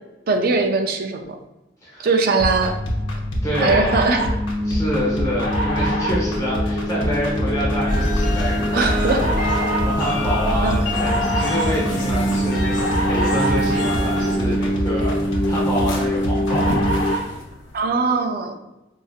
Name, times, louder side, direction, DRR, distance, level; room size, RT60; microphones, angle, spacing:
voice 1, 0.3-1.4 2.0-2.8 3.6-4.3 8.7-9.3 10.6-10.8 17.7-18.6, right 3 dB, 50° right, 5 dB, 0.4 m, -20 dB
sound 1, 2.4-17.3, equal, 90° left, 0.9 m, -23 dB
voice 2, 3.4-4.0 4.6-9.1 9.8-16.8, equal, 15° left, -6 dB, 0.9 m, -27 dB
sound 2, 7.9-14.4, left 1 dB, 50° left, 1.0 m, -26 dB
sound 3, 11.7-17.9, left 2 dB, 70° left, 0.6 m, -35 dB
4.7 x 2.7 x 2.3 m, 0.97 s
head